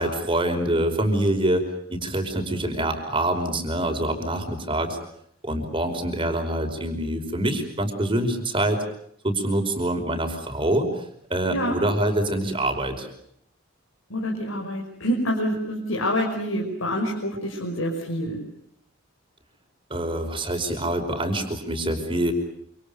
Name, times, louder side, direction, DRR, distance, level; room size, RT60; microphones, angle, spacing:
voice 1, 0.0-1.6 1.9-5.0 5.4-8.8 9.2-13.1 19.9-22.3, right 1 dB, 25° right, 5 dB, 5.1 m, -25 dB
voice 2, 14.1-18.4, equal, 80° left, -1 dB, 5.9 m, -27 dB
27.5 x 27.5 x 6.9 m, 0.72 s
head